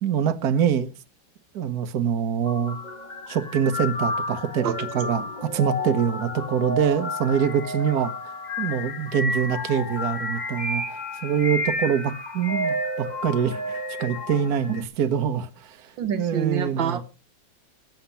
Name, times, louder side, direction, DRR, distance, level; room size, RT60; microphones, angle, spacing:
voice 1, 0.0-0.9 1.5-2.8 3.3-8.1 8.6-15.9 16.1-17.0, right 8 dB, 55° right, 1.5 m, -25 dB
sound 1, 2.4-14.8, left 1 dB, 25° left, 1.2 m, -31 dB
voice 2, 16.0-17.0, right 8 dB, 75° right, 1.9 m, -27 dB
18.0 x 8.1 x 5.7 m
omnidirectional pair, 2.1 m